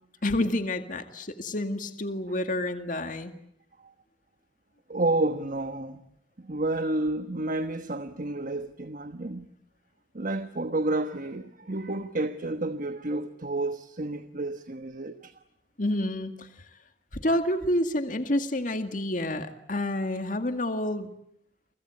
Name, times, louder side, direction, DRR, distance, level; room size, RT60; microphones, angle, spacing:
voice 1, 0.2-3.3 15.8-16.5 17.1-21.1, left 1 dB, 45° left, 2.0 m, -29 dB
voice 2, 4.9-6.0 6.4-9.5 10.1-15.3, right 2 dB, 50° right, 1.2 m, -30 dB
30.0 x 24.0 x 7.8 m
head